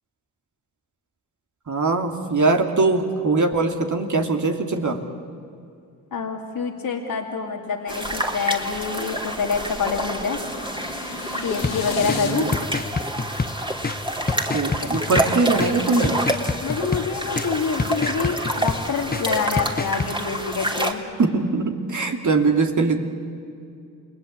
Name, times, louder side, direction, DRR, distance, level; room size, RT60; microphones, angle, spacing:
voice 1, 1.7-5.0 12.0-12.5 14.5-16.2 21.2-23.0, right 3 dB, 50° right, 4 dB, 2.9 m, -22 dB
voice 2, 6.1-10.4 11.4-12.5 14.8-14.9 16.6-21.0, left 5 dB, 65° left, 0 dB, 2.4 m, -26 dB
sound 1, 7.9-20.9, right 1 dB, 15° right, 3.1 m, -28 dB
sound 2, 9.1-12.3, left 6 dB, 90° left, 2.8 m, -37 dB
sound 3, 11.6-20.1, left 4 dB, 25° left, 1.0 m, -29 dB
29.0 x 19.5 x 8.4 m, 2.4 s
supercardioid pair, 45°, 38 cm